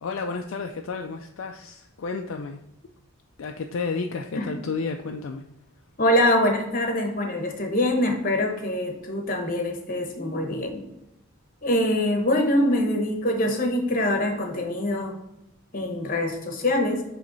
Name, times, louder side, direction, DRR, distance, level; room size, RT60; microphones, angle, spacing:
voice 1, 0.0-2.6 3.4-5.4, left 4 dB, 60° left, 3 dB, 0.4 m, -31 dB
voice 2, 6.0-10.8 11.6-15.2 15.7-17.0, left 1 dB, 40° left, 4 dB, 1.0 m, -24 dB
7.7 x 3.2 x 4.0 m, 0.88 s
head